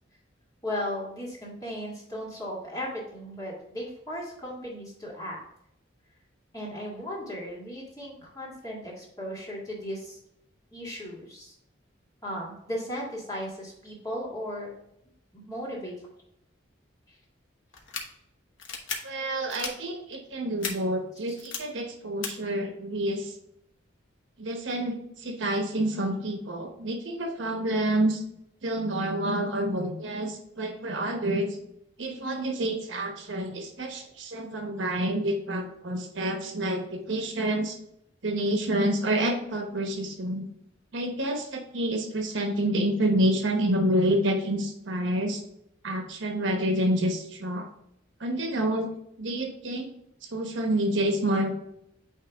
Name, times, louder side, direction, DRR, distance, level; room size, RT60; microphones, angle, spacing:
voice 1, 0.6-5.4 6.5-10.2 10.7-11.6 12.2-14.7 15.3-15.9 17.1-17.2 21.3-21.4, equal, 20° left, -5 dB, 1.9 m, -36 dB
sound 1, 17.7-18.0 18.6-19.0 19.5-19.7 20.6-20.7 21.4-21.6 22.2-22.3, left 5 dB, 80° left, 1.0 m, -33 dB
voice 2, 19.0-23.3 24.4-28.2 28.6-31.6 32.0-37.8 38.2-40.5 40.9-45.4 45.8-47.7 48.2-48.9 49.2-49.9 50.3-51.5, right 1 dB, 75° right, 3 dB, 1.0 m, -28 dB
8.8 x 3.1 x 3.5 m, 0.77 s
head